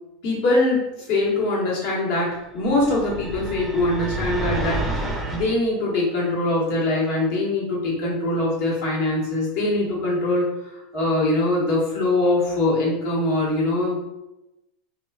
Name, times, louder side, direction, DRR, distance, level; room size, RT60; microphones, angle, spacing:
voice 1, 0.2-0.8 1.1-14.1, left 2 dB, 65° left, -5 dB, 1.2 m, -23 dB
sound 1, 2.6-5.5, right 1 dB, 10° right, 0.5 m, -29 dB
2.4 x 2.3 x 2.3 m, 0.93 s
supercardioid pair, 115°, 0 cm